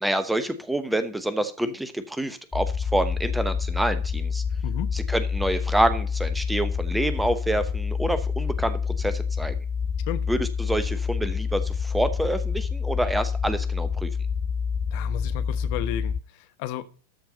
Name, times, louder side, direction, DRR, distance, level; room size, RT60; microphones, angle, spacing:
voice 1, 0.0-4.4 4.9-9.5 10.3-14.1, right 1 dB, 5° right, 0.9 m, -27 dB
sound 1, 2.5-16.2, left 6 dB, 20° left, 0.6 m, -28 dB
voice 2, 14.9-16.8, left 13 dB, 45° left, 0.9 m, -33 dB
13.0 x 4.6 x 5.4 m
figure-of-eight pair, 90°, 0 cm